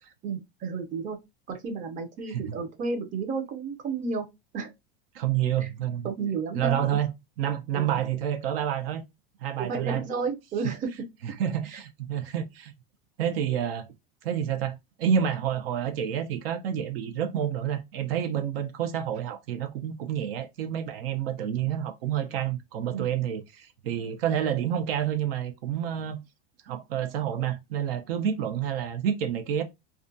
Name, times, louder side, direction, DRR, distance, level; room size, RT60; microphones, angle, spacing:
voice 1, 0.2-1.2 1.5-4.3 4.5-4.7 5.6-5.7 6.0-7.0 7.7-8.0 9.6-10.9 22.9-23.1, right 4 dB, 25° right, 0.6 m, -32 dB
voice 2, 2.3-2.6 5.1-6.1 6.5-7.1 7.4-9.0 9.4-10.0 10.6-10.7 11.2-12.7 13.2-13.9 14.2-26.2 26.6-29.6, right 9 dB, 70° right, 0.6 m, -29 dB
2.4 x 2.2 x 2.5 m
supercardioid pair, 135°, 31 cm